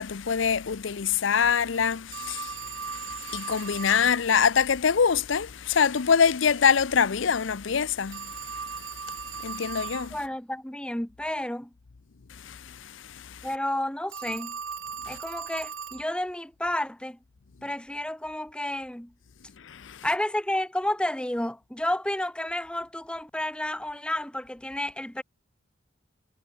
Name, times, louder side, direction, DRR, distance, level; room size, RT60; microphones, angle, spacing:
voice 1, 0.0-10.2 12.3-13.5 15.0-15.2 19.6-20.1, left 6 dB, 75° left, 0.6 m, -25 dB
Telephone, 2.1-4.1 8.1-10.1 14.1-16.1, right 6 dB, 85° right, 2.1 m, -37 dB
voice 2, 10.1-11.7 13.4-14.6 15.1-17.2 17.6-19.1 20.0-25.2, left 1 dB, 5° left, 0.7 m, -31 dB
head